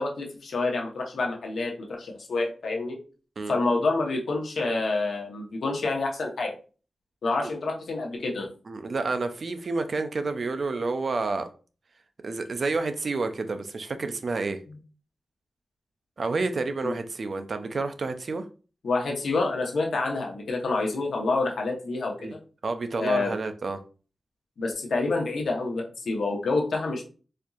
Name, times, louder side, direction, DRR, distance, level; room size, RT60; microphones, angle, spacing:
voice 1, 0.0-3.0 3.5-6.5 7.2-8.5 16.8-16.9 18.8-22.4 23.0-23.3 24.6-27.0, left 3 dB, 80° left, 0.9 m, -28 dB
voice 2, 8.7-11.5 12.2-14.6 16.2-18.4 22.2-22.3 22.6-23.8, right 3 dB, 55° right, 0.4 m, -29 dB
4.3 x 2.6 x 2.4 m
wide cardioid pair, 85°, 0 cm